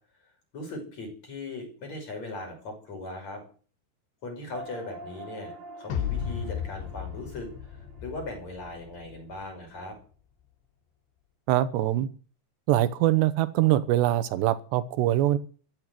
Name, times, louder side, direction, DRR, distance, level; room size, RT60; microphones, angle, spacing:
voice 1, 0.5-3.4 4.2-5.5 5.8-10.0, left 2 dB, 40° left, 3 dB, 6.9 m, -39 dB
sound 1, 4.5-9.3, right 2 dB, 60° right, 3.8 m, -46 dB
sound 2, 5.9-9.2, left 8 dB, 85° left, 4.2 m, -34 dB
voice 2, 11.5-12.1 12.7-15.4, right 13 dB, 80° right, 14 dB, 3.0 m, -23 dB
14.5 x 10.5 x 7.9 m, 0.41 s
omnidirectional pair, 5.2 m